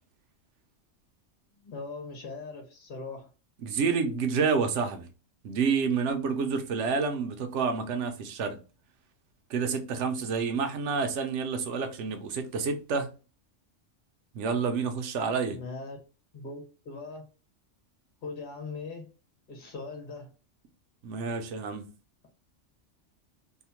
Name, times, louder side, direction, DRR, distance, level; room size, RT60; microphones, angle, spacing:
voice 1, 1.6-3.3 15.5-16.0 16.3-17.3 18.2-19.1 19.5-20.3, left 3 dB, 45° left, 1.0 m, -40 dB
voice 2, 3.6-5.1 5.4-8.6 9.5-13.1 14.3-15.6 21.0-21.8, right 5 dB, 75° right, 0.9 m, -29 dB
2.8 x 2.1 x 2.9 m
omnidirectional pair, 1.3 m